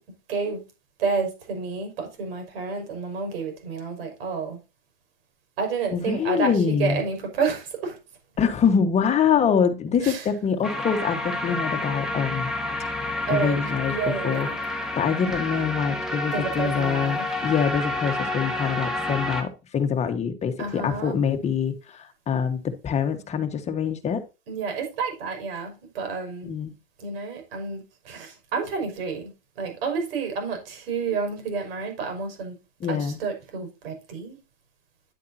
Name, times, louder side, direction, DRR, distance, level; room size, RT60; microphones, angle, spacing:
voice 1, 0.3-0.6 1.0-4.6 5.6-8.0 10.0-10.3 13.3-14.4 16.3-17.3 20.6-21.2 24.5-26.6 27.0-29.3 29.6-32.6 32.9-34.4, right 5 dB, 70° right, 5.8 m, -30 dB
voice 2, 5.9-7.0 8.4-12.5 12.9-24.2 26.4-26.7 32.8-33.2, left 7 dB, 20° left, 1.5 m, -25 dB
sound 1, 10.6-19.4, left 2 dB, ahead, 1.8 m, -29 dB
10.5 x 8.4 x 2.8 m
supercardioid pair, 130°, 30 cm